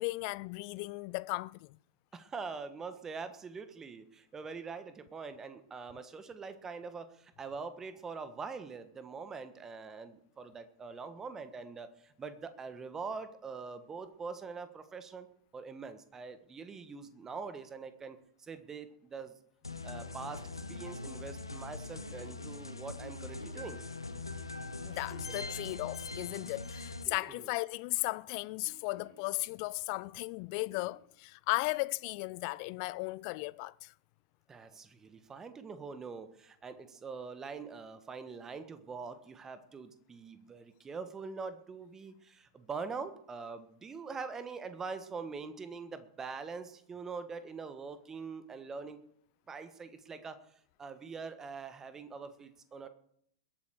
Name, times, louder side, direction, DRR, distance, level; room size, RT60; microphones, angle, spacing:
voice 1, 0.0-1.8 24.9-33.9, left 24 dB, 45° left, 0.4 m, -36 dB
voice 2, 2.1-15.3 15.5-19.4 19.8-23.8 27.4-27.5 34.5-49.0 49.5-50.4 50.8-52.9, right 5 dB, 20° right, 1.4 m, -43 dB
sound 1, 19.6-27.0, left 3 dB, 85° left, 0.9 m, -42 dB
Giggle, 21.9-22.4 23.3-23.8 24.4-24.5 24.9-25.7 26.8-27.5 28.6-29.3 30.6-31.0 32.5-32.6, equal, 85° right, 5.8 m, -54 dB
21.5 x 8.6 x 4.9 m
figure-of-eight pair, 95°, 2 cm